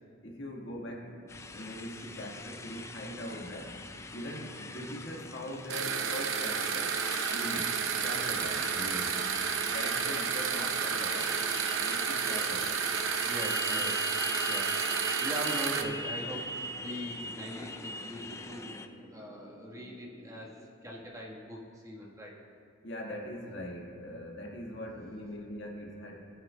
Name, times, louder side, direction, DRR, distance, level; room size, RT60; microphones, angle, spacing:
voice 1, 0.2-3.7 4.1-7.0 7.3-9.2 9.6-11.3 11.6-12.8 22.8-26.3, equal, 65° left, -1 dB, 1.6 m, -42 dB
Motorcycle, 1.3-18.9, left 1 dB, 15° left, 0.4 m, -42 dB
sound 1, 5.7-15.8, right 6 dB, 85° right, 0.7 m, -31 dB
voice 2, 13.2-14.0 14.5-14.8 15.2-22.3 24.9-25.2, equal, 15° right, -3 dB, 1.3 m, -41 dB
19.0 x 9.0 x 2.2 m, 2.3 s
head